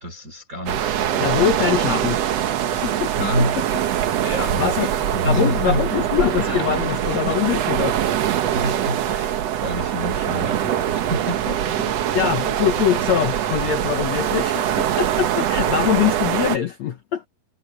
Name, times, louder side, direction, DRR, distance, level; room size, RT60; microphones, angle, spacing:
voice 1, 0.0-1.4 3.2-3.6 4.2-12.4 13.0-13.1, equal, 20° right, 5.6 m, -29 dB
sound 1, 0.7-16.6, right 10 dB, 85° right, 1.4 m, -23 dB
voice 2, 1.2-2.2 2.5-3.5 4.6-4.9 5.2-7.9 12.1-17.3, left 10 dB, 80° left, 1.5 m, -23 dB
omnidirectional pair, 4.6 m